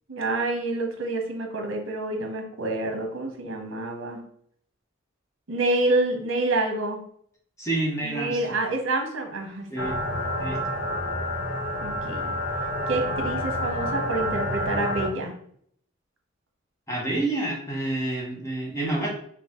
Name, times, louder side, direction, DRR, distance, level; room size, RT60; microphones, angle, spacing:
voice 1, 0.1-4.2 5.5-7.0 8.0-9.9 11.8-12.3 12.9-15.3, right 2 dB, 65° right, 3 dB, 1.1 m, -28 dB
voice 2, 7.6-8.6 9.7-10.0 10.4-10.6 16.9-19.1, right 2 dB, 15° left, -3 dB, 1.1 m, -28 dB
sound 1, 9.8-15.1, left 1 dB, 60° left, 0.9 m, -28 dB
5.5 x 2.3 x 3.8 m, 0.65 s
head